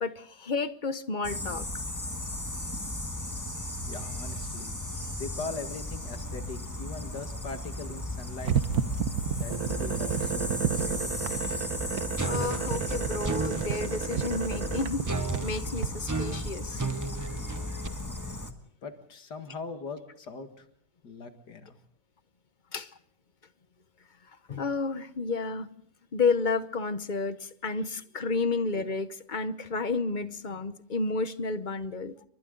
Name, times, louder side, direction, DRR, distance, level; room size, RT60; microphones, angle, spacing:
voice 1, 0.0-1.7 12.2-16.9 18.0-18.1 22.7-22.9 24.5-25.7 26.1-32.1, left 4 dB, 35° left, 0.9 m, -31 dB
sound 1, 1.2-18.5, left 1 dB, 10° left, 1.6 m, -36 dB
voice 2, 3.9-4.8 5.2-8.5 9.3-10.6 10.8-11.2 17.2-17.7 18.8-20.6 21.0-21.8 27.4-27.5 27.9-28.0, left 4 dB, 90° left, 2.6 m, -41 dB
sound 2, 8.4-15.9, right 8 dB, 65° right, 1.5 m, -31 dB
sound 3, 12.2-13.7 15.0-17.9, right 3 dB, 25° right, 0.4 m, -33 dB
29.5 x 24.0 x 3.9 m
omnidirectional pair, 1.7 m